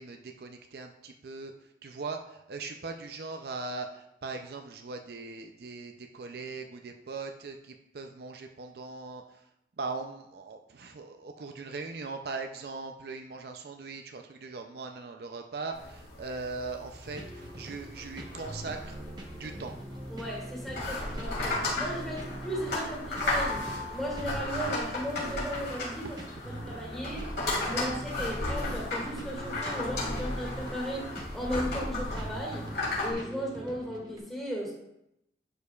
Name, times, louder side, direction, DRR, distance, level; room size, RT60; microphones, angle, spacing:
voice 1, 0.0-1.5 1.8-9.2 9.8-19.0 19.3-19.7, right 3 dB, 60° right, 5 dB, 0.4 m, -40 dB
sound 1, 15.7-33.1, left 2 dB, 60° left, 2.7 m, -35 dB
sound 2, 17.0-34.2, right 1 dB, 25° right, 0.8 m, -43 dB
voice 2, 20.1-27.3 27.7-32.7 33.0-34.7, equal, ahead, -4 dB, 2.0 m, -36 dB
11.0 x 5.0 x 2.3 m, 0.82 s
head